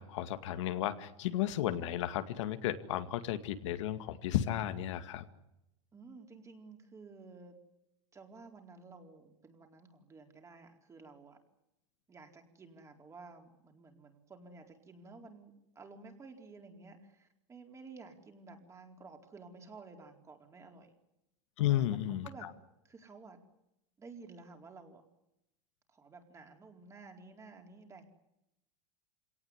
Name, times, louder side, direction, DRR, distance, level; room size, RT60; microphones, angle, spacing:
voice 1, 0.0-5.2 21.6-22.5, left 12 dB, 75° left, 9 dB, 2.2 m, -33 dB
voice 2, 5.9-7.5 8.1-11.4 12.1-20.9 21.6-22.0 22.2-22.5 22.8-23.4 24.0-25.0 25.9-28.0, right 4 dB, 20° right, 4 dB, 4.4 m, -53 dB
26.5 x 18.0 x 10.0 m, 0.87 s
supercardioid pair, 130°, 16 cm